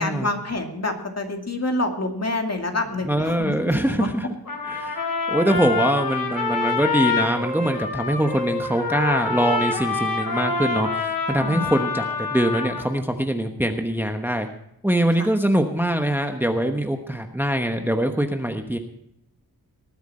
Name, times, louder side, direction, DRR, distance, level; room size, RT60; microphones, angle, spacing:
voice 1, 0.0-3.6 3.9-4.1 11.4-11.7 15.2-15.3, left 2 dB, 40° left, 3 dB, 2.3 m, -27 dB
voice 2, 3.0-4.3 4.6-5.0 5.3-14.5 14.8-18.8, right 1 dB, 5° right, 5 dB, 1.1 m, -23 dB
Trumpet, 4.5-12.9, left 4 dB, 65° left, 3.5 m, -26 dB
19.5 x 9.3 x 4.3 m, 0.78 s
wide cardioid pair, 90°, 38 cm